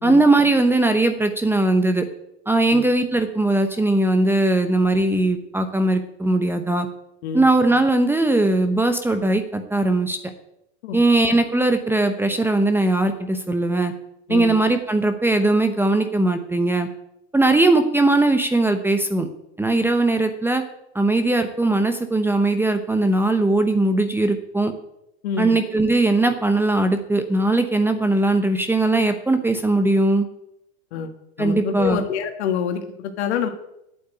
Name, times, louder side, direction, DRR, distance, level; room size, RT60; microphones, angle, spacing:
voice 1, 0.0-2.0 2.5-6.9 7.3-10.2 10.9-13.9 14.3-16.9 17.3-19.3 19.6-20.6 20.9-24.7 25.4-30.3 31.4-32.0, right 2 dB, 5° right, 7 dB, 0.9 m, -19 dB
voice 2, 25.2-25.5 30.9-31.1 31.4-33.5, left 7 dB, 70° left, 5 dB, 1.6 m, -26 dB
8.7 x 8.2 x 9.0 m, 0.83 s
hypercardioid pair, 120°, 34 cm